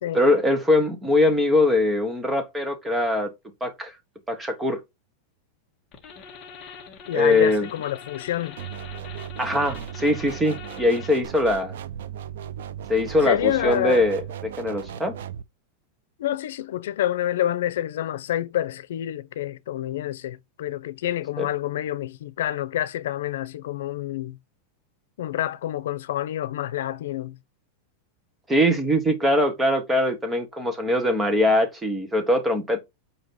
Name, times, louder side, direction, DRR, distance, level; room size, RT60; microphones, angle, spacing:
voice 1, 0.1-3.3 3.6-3.9 4.3-4.8 7.1-7.7 9.4-11.7 12.9-14.2 14.6-15.1 21.4-21.5 28.5-32.8, left 1 dB, 5° right, 1.2 m, -22 dB
sound 1, 5.9-11.3, left 6 dB, 20° left, 1.7 m, -43 dB
voice 2, 7.1-8.6 9.5-9.7 13.2-14.1 16.2-24.4 25.2-27.4, left 12 dB, 75° left, 0.8 m, -28 dB
sound 2, 8.6-15.4, right 9 dB, 80° right, 0.7 m, -37 dB
8.7 x 2.9 x 5.8 m
supercardioid pair, 180°, 0 cm